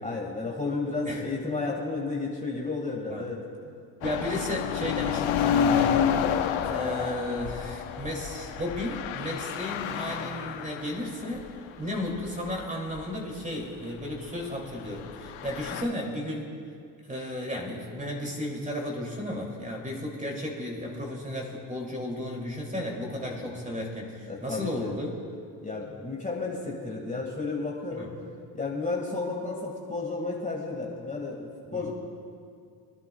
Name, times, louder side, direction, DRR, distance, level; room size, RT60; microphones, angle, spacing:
voice 1, 0.0-3.4 23.2-23.6 24.3-24.9 25.6-28.1 28.5-31.9, left 3 dB, 15° left, -2 dB, 2.1 m, -32 dB
sound 1, 4.0-11.1 11.4-11.5 12.1-12.6 13.0-13.1 15.0-15.8, left 8 dB, 65° left, 0.9 m, -29 dB
voice 2, 4.0-6.0 6.6-11.5 11.8-16.5 17.1-25.2 27.9-28.1 31.7-31.9, left 1 dB, 15° right, 0 dB, 2.8 m, -34 dB
25.0 x 11.0 x 2.3 m, 2.3 s
supercardioid pair, 70°, 50 cm